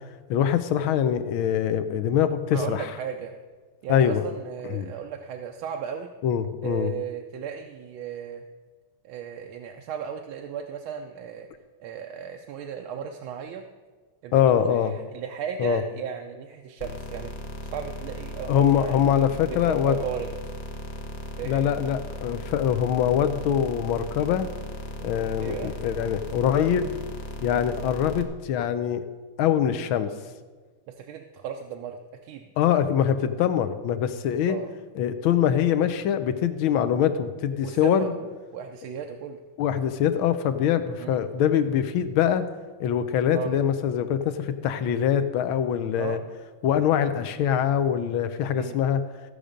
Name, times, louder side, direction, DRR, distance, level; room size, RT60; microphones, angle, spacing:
voice 1, 0.3-2.9 3.9-4.2 4.7-4.9 6.2-6.9 14.3-14.9 15.6-15.8 18.5-20.0 21.4-24.5 25.0-26.9 27.4-29.0 29.4-30.1 32.6-34.6 34.9-38.1 39.6-42.4 42.8-46.2 46.6-49.0, left 9 dB, 75° left, 10 dB, 1.5 m, -23 dB
voice 2, 2.5-3.3 3.8-6.1 6.6-8.4 9.0-11.5 11.8-13.6 14.2-17.3 17.6-19.1 19.5-20.3 21.4-21.7 25.4-25.7 30.9-32.5 34.5-34.7 37.6-39.4 41.0-41.2 43.3-43.5 46.0-46.2 48.5-48.8, right 8 dB, 75° right, 3 dB, 1.5 m, -35 dB
sound 1, 16.8-28.2, left 1 dB, 50° left, 0.8 m, -37 dB
15.0 x 6.5 x 5.1 m, 1.4 s
omnidirectional pair, 2.3 m